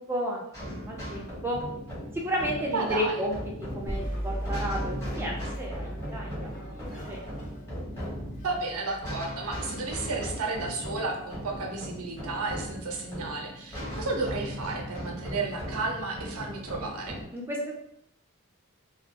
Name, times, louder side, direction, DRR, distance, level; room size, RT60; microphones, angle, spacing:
voice 1, 0.0-1.6 2.1-7.2 17.3-17.8, equal, 10° right, -2 dB, 0.4 m, -33 dB
sound 1, 0.5-17.2, equal, 15° left, 0.9 m, -38 dB
voice 2, 2.7-3.2 8.4-17.2, right 3 dB, 90° right, 1 dB, 0.5 m, -32 dB
sound 2, 3.9-9.3, equal, 40° left, 0.6 m, -37 dB
2.2 x 2.0 x 2.7 m, 0.75 s
head